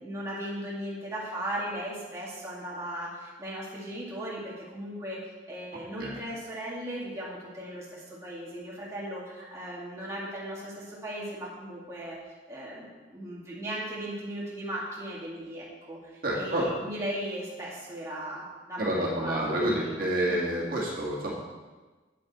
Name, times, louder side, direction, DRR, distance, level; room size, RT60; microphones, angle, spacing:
voice 1, 0.0-12.2 12.5-20.6, right 1 dB, 15° right, -6 dB, 1.9 m, -37 dB
voice 2, 16.2-16.7 18.8-21.4, right 1 dB, 50° right, -4 dB, 1.8 m, -28 dB
8.5 x 8.5 x 4.1 m, 1.3 s
head